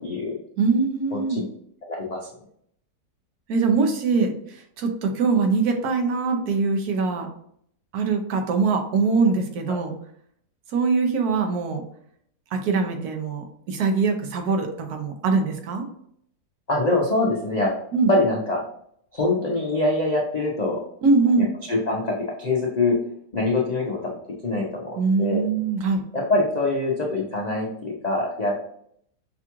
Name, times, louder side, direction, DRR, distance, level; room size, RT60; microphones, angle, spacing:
voice 1, 0.0-0.4 1.1-1.4 1.8-2.3 9.7-9.8 16.7-17.8 18.1-18.6 19.1-20.8 21.7-23.0 23.3-24.1 24.4-25.4 26.1-28.5, left 2 dB, 55° left, -3 dB, 0.4 m, -24 dB
voice 2, 0.6-1.5 3.5-7.3 7.9-9.9 10.7-11.8 12.5-15.9 17.9-18.1 21.0-21.5 25.0-26.0, right 4 dB, 70° right, 5 dB, 1.2 m, -22 dB
6.0 x 2.3 x 2.9 m, 0.67 s
omnidirectional pair, 1.8 m